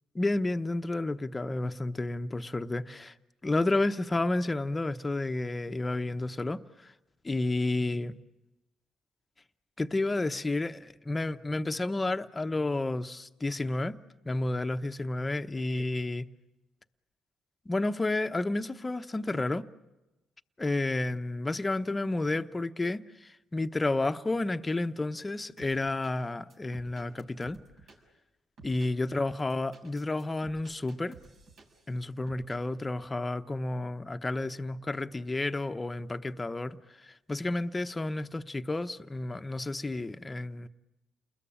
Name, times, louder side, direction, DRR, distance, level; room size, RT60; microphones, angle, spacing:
voice 1, 0.1-3.1 3.4-6.9 7.2-8.2 9.8-14.0 14.2-16.3 17.7-19.6 20.6-27.6 28.6-31.2 31.9-40.7, left 2 dB, 20° left, 1.0 m, -31 dB
sound 1, 25.6-26.1 26.5-28.0 28.6-28.9 29.4-31.9 32.3-32.6, right 3 dB, 65° right, 6.4 m, -53 dB
30.0 x 21.5 x 8.8 m
cardioid pair, 90°, 0 cm